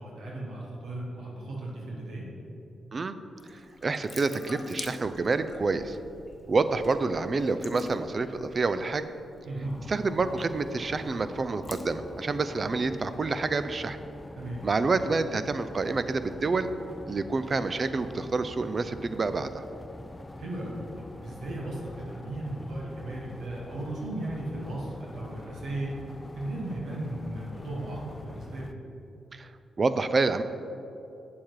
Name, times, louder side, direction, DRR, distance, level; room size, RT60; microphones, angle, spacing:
voice 1, 0.0-2.3 9.4-9.8 14.4-14.6 20.4-26.0 26.3-28.7, right 1 dB, 80° right, -4 dB, 1.5 m, -36 dB
Water tap faucet / Sink (filling or washing) / Drip, 3.4-13.2, left 3 dB, 40° left, 0.8 m, -46 dB
voice 2, 3.8-6.0 6.5-9.1 9.9-14.0 14.6-16.7 17.1-19.6 29.3-29.5 29.8-30.4, right 3 dB, 45° right, 11 dB, 0.5 m, -28 dB
sound 1, 9.6-28.7, left 2 dB, 20° left, 0.4 m, -45 dB
7.4 x 7.1 x 4.7 m, 2.8 s
supercardioid pair, 55°, 0 cm